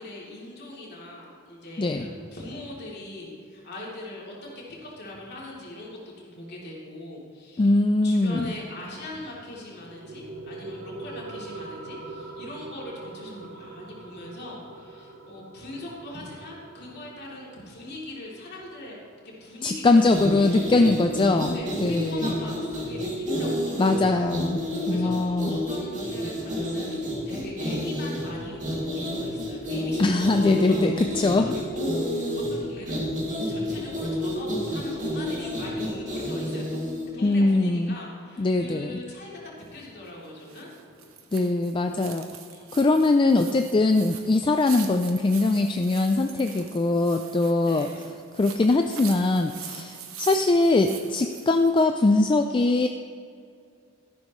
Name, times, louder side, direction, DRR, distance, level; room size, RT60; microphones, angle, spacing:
voice 1, 0.0-18.9 19.2-20.0 20.4-20.9 21.5-24.1 24.9-27.0 27.2-33.0 33.5-41.1 42.5-42.8 47.7-48.0, left 1 dB, 55° left, -5 dB, 3.2 m, -41 dB
voice 2, 7.6-8.5 19.6-21.6 21.8-22.3 23.8-25.6 30.0-31.5 37.2-38.0 38.4-38.9 41.3-42.3 42.7-47.9 48.3-52.9, left 2 dB, 25° left, 6 dB, 0.4 m, -22 dB
sound 1, 9.3-20.3, right 2 dB, 65° right, 1.2 m, -43 dB
sound 2, 20.0-37.1, equal, 35° right, 2.7 m, -30 dB
sound 3, 39.6-51.9, right 8 dB, 85° right, 1.2 m, -43 dB
13.5 x 11.5 x 3.2 m, 2.3 s
head